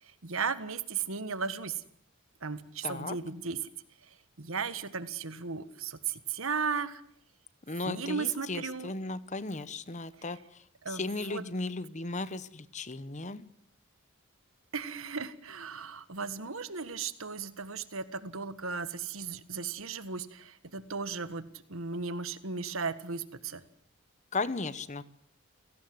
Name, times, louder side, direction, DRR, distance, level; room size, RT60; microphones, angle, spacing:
voice 1, 0.0-1.8 2.4-3.6 4.0-7.0 7.8-8.9 10.8-11.4 14.7-23.6, right 5 dB, 70° right, 13 dB, 1.6 m, -36 dB
voice 2, 2.8-3.2 7.7-10.4 10.9-13.4 24.3-25.0, left 3 dB, 35° left, 15 dB, 1.1 m, -36 dB
29.5 x 18.0 x 7.9 m, 0.66 s
head